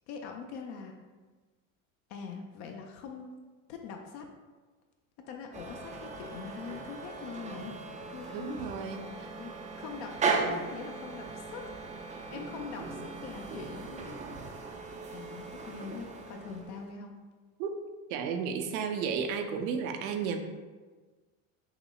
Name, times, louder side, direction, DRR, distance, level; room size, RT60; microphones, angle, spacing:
voice 1, 0.1-0.9 2.1-3.3 3.7-4.3 5.3-7.7 8.1-9.1 9.4-9.5 9.8-11.7 12.3-14.2 15.1-17.1, left 5 dB, 65° left, 3 dB, 0.5 m, -43 dB
sound 1, 5.5-16.9, right 4 dB, 20° right, 0.3 m, -37 dB
voice 2, 8.3-9.3 17.6-17.7 18.1-20.4, right 6 dB, 80° right, 5 dB, 0.6 m, -33 dB
5.9 x 2.0 x 2.3 m, 1.3 s
supercardioid pair, 100°, 42 cm